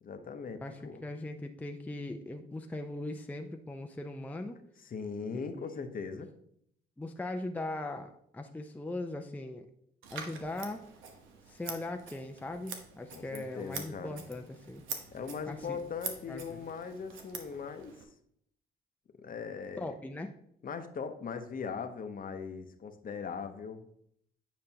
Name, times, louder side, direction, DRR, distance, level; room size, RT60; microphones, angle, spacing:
voice 1, 0.0-1.0 4.8-6.3 13.1-14.2 15.1-17.9 19.2-19.9 20.6-23.8, left 5 dB, 45° left, 8 dB, 0.8 m, -40 dB
voice 2, 0.6-4.6 5.3-5.7 7.0-9.7 10.1-10.8 11.5-14.8 15.5-15.8 16.3-16.7 19.8-20.3, left 2 dB, 10° left, 5 dB, 0.5 m, -40 dB
Scissors, 10.0-18.0, right 5 dB, 85° right, 1.0 m, -45 dB
8.8 x 5.1 x 2.8 m, 0.71 s
cardioid pair, 90°, 20 cm